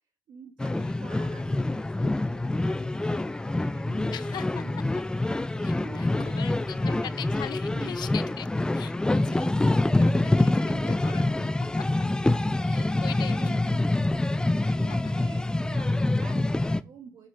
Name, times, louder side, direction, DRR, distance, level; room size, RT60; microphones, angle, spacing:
voice 1, 0.3-5.2 5.8-7.1 7.7-8.0 10.1-11.5 12.3-14.2 14.8-17.3, right 6 dB, 75° right, 2.3 m, -49 dB
sound 1, 0.6-16.8, left 2 dB, 10° left, 0.5 m, -26 dB
voice 2, 4.1-5.0 5.6-8.5 8.7-11.5 11.8-11.9 12.6-13.4 13.7-13.8 14.7-14.8, left 10 dB, 75° left, 0.7 m, -41 dB
7.2 x 6.4 x 6.7 m
cardioid pair, 110°, 7 cm